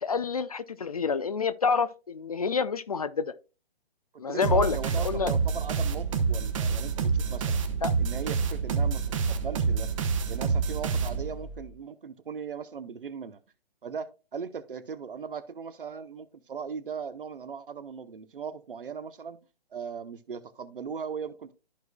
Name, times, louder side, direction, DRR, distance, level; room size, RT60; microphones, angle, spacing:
voice 1, 0.0-3.3 4.2-5.3 7.8-7.9, left 5 dB, 40° left, 0.4 m, -28 dB
voice 2, 4.1-7.6 8.0-9.0 9.3-9.9 10.3-13.4 13.8-19.4 19.7-21.5, right 6 dB, 60° right, 0.9 m, -38 dB
sound 1, 4.4-11.6, right 5 dB, 30° right, 1.0 m, -27 dB
13.5 x 4.6 x 2.3 m
figure-of-eight pair, 135°, 31 cm